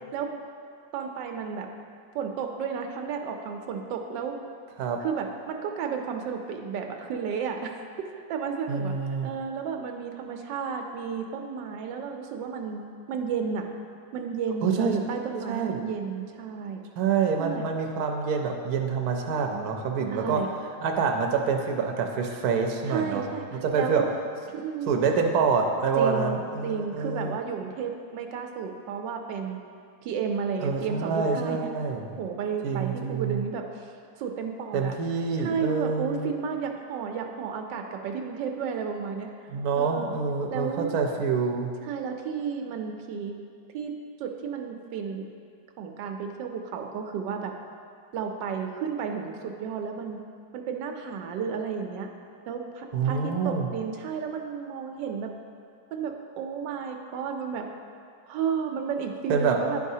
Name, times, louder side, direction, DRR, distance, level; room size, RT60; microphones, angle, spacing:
voice 1, 0.9-1.7 2.1-4.3 5.0-13.7 14.1-16.8 17.4-17.7 20.1-20.5 22.8-23.4 23.7-24.1 24.5-25.0 26.0-29.6 30.0-31.6 32.2-33.9 34.2-34.9 35.4-39.3 39.8-40.2 40.5-40.9 41.8-43.3 43.7-43.9 44.2-45.3 45.8-47.5 48.1-50.2 50.5-52.1 52.5-55.3 55.9-57.7 58.3-59.8, right 6 dB, 90° right, 4 dB, 1.3 m, -32 dB
voice 2, 8.7-9.3 14.6-14.9 15.5-15.8 17.0-20.4 20.8-23.2 23.5-24.0 24.9-27.4 30.6-32.1 32.6-33.4 34.7-36.3 39.5-41.7 52.9-53.7 59.3-59.6, right 5 dB, 70° right, 2 dB, 1.0 m, -26 dB
10.0 x 4.7 x 2.7 m, 2.3 s
omnidirectional pair, 1.9 m